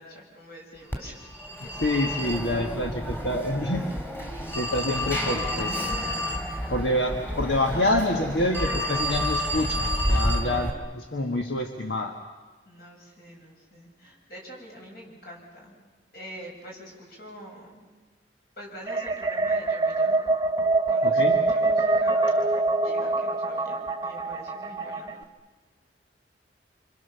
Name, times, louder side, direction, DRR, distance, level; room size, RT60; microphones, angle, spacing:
voice 1, 0.0-1.3 1.6-1.8 12.7-15.8 16.1-17.9 18.6-20.3 20.9-25.2, equal, 55° left, -1 dB, 6.9 m, -45 dB
Telephone, 0.9-10.7, equal, 10° left, 2.6 m, -29 dB
voice 2, 1.8-3.9 4.5-5.8 6.7-12.1 21.0-21.4, left 1 dB, 80° left, 3 dB, 1.6 m, -27 dB
sound 1, 18.9-25.2, right 3 dB, 20° right, 1.2 m, -24 dB
28.0 x 25.5 x 7.0 m, 1.3 s
head